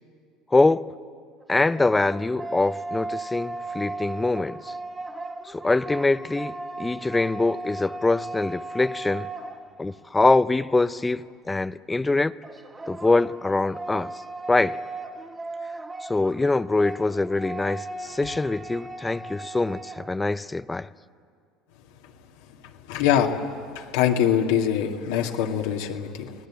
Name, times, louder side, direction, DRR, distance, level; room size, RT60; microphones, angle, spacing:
voice 1, 0.5-0.9 1.5-4.7 5.5-9.3 9.8-12.3 12.9-14.1 14.5-14.8 16.0-20.9, left 2 dB, 15° left, 0.6 m, -24 dB
sound 1, 1.4-10.1 12.4-20.2, right 2 dB, 20° right, 1.7 m, -37 dB
voice 2, 22.9-23.4 23.8-26.3, left 9 dB, 80° left, 2.1 m, -23 dB
28.5 x 18.5 x 8.7 m
supercardioid pair, 90°, 0 cm